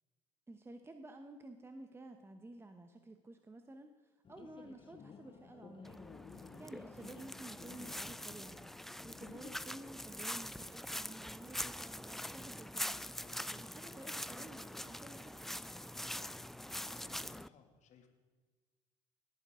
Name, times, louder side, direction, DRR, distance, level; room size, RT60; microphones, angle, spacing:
voice 1, 0.5-8.7 9.0-13.0 13.5-15.5, right 2 dB, 15° right, 7 dB, 0.9 m, -53 dB
sound 1, 4.2-9.6, left 6 dB, 35° left, 1.0 m, -55 dB
sound 2, 5.8-17.5, left 1 dB, ahead, 0.3 m, -44 dB
voice 2, 15.9-16.3 16.9-18.1, left 5 dB, 50° left, 4 dB, 2.3 m, -62 dB
18.5 x 9.4 x 3.7 m, 1.4 s
hypercardioid pair, 75°, 15 cm